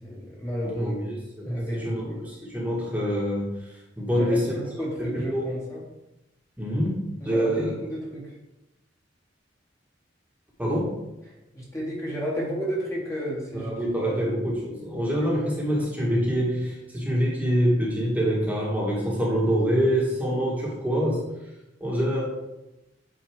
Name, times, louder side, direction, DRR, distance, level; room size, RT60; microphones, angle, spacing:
voice 1, 0.0-1.0 1.5-2.1 4.1-5.8 7.2-8.3 11.5-13.7 14.0-14.3 15.2-15.3, equal, 15° left, -4 dB, 1.6 m, -32 dB
voice 2, 0.6-3.6 4.0-4.6 5.0-5.5 6.6-7.7 10.6-10.9 13.5-21.2 21.8-22.2, equal, 10° right, -5 dB, 1.5 m, -25 dB
8.8 x 4.2 x 3.5 m, 0.94 s
head